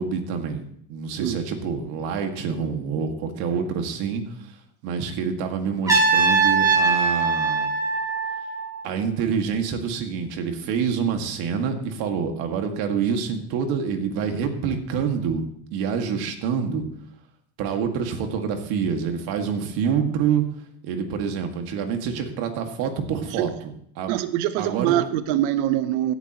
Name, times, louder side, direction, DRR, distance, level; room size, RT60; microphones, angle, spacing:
voice 1, 0.0-4.5 4.8-7.7 8.8-15.4 15.7-16.8 17.6-20.5 20.8-24.1 24.6-25.0, right 6 dB, 65° right, 5 dB, 2.0 m, -27 dB
Trumpet, 5.9-8.8, right 4 dB, 10° right, 3.1 m, -21 dB
voice 2, 24.1-26.1, right 13 dB, 80° right, 12 dB, 0.9 m, -23 dB
16.5 x 11.0 x 3.0 m, 0.67 s
cardioid pair, 140°, 40 cm